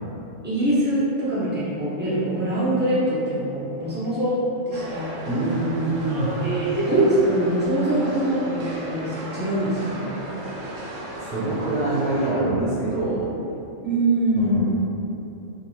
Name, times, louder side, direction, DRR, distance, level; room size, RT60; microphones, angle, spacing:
voice 1, 0.4-4.4 4.7-5.1 6.1-10.1 13.8-14.7, right 1 dB, 15° right, -11 dB, 0.3 m, -23 dB
sound 1, 4.7-12.3, right 1 dB, 70° right, 0.8 m, -35 dB
voice 2, 5.3-6.3 11.3-13.3 14.3-14.7, right 2 dB, 35° right, -12 dB, 0.8 m, -24 dB
2.7 x 2.5 x 3.1 m, 2.7 s
omnidirectional pair, 1.4 m